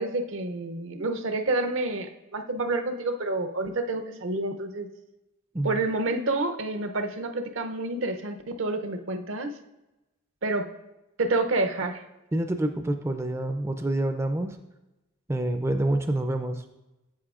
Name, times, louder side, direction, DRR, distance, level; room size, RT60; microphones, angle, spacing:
voice 1, 0.0-4.9 5.6-9.5 10.4-10.7 11.2-12.0, right 2 dB, 75° right, 7 dB, 0.7 m, -28 dB
voice 2, 12.3-14.6 15.3-16.6, right 1 dB, 15° right, 7 dB, 0.3 m, -27 dB
9.9 x 7.6 x 2.4 m, 0.99 s
head